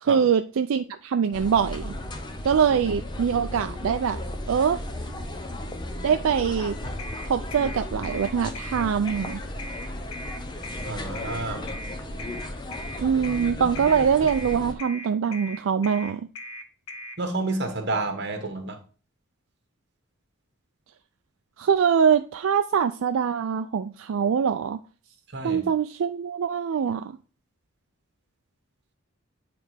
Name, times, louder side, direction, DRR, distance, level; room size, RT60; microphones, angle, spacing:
voice 1, 0.0-1.9 2.4-4.2 4.5-4.8 6.0-6.8 7.3-9.4 13.0-16.3 21.6-24.8 25.4-27.2, right 7 dB, 75° right, 8 dB, 0.4 m, -23 dB
sound 1, 1.3-14.7, left 1 dB, 20° left, 0.7 m, -35 dB
sound 2, 7.0-17.2, left 1 dB, 85° left, 0.8 m, -39 dB
voice 2, 10.8-11.7 17.2-18.8 25.3-25.6, right 2 dB, 55° right, 6 dB, 1.3 m, -30 dB
9.1 x 3.4 x 4.9 m, 0.38 s
head